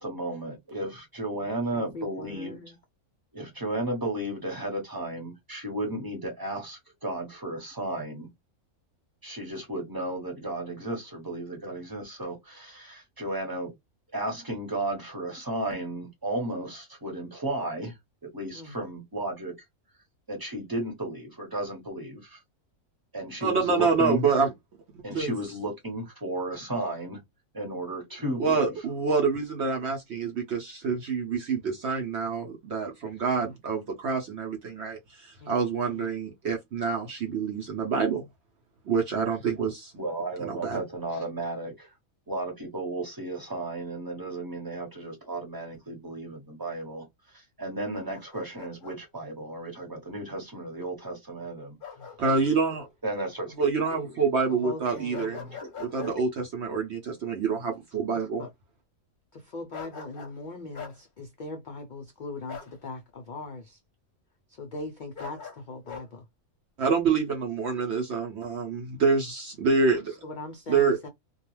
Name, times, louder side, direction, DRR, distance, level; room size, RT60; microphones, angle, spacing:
voice 1, 0.0-2.6 3.3-8.3 9.2-13.7 14.1-17.9 18.3-19.5 20.3-22.4 23.1-24.2 25.0-27.2 27.5-28.6 39.9-41.9 42.3-47.0 47.3-51.7 53.0-53.5 53.9-54.0 55.3-55.4 56.0-56.1, right 1 dB, 20° right, 0.8 m, -34 dB
voice 2, 1.4-2.8 18.5-18.8 33.3-33.5 35.4-35.6 35.9-36.1 52.0-52.1 54.5-55.3 58.4-58.5 59.3-63.8 64.5-66.3 70.2-71.1, left 2 dB, 70° left, 0.4 m, -40 dB
voice 3, 23.4-24.5 24.9-25.3 28.4-38.3 38.9-39.9 40.4-40.8 52.2-52.9 53.6-55.4 55.8-58.4 66.8-70.2 70.7-71.1, right 5 dB, 60° right, 0.8 m, -27 dB
Bark, 47.9-49.0 51.8-52.4 52.8-52.9 55.1-56.2 59.7-60.4 60.7-61.0 62.5-62.8 65.1-66.1, left 7 dB, 45° left, 0.8 m, -42 dB
2.3 x 2.3 x 3.0 m
omnidirectional pair, 1.5 m